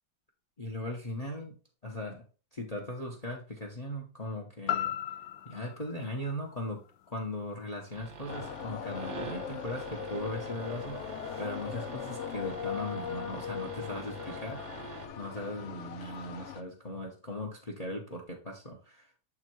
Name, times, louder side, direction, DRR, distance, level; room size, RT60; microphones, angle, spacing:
voice 1, 0.6-1.5 1.8-2.2 2.5-4.9 5.4-6.8 7.1-19.2, left 1 dB, 25° left, 2 dB, 0.9 m, -39 dB
sound 1, 4.7-8.8 9.2-9.3, left 11 dB, 85° left, 1.3 m, -38 dB
sound 2, 7.9-15.1, right 6 dB, 50° right, 0.8 m, -46 dB
sound 3, 8.3-16.6, left 8 dB, 65° left, 0.7 m, -39 dB
7.4 x 3.7 x 4.5 m, 0.35 s
omnidirectional pair, 2.0 m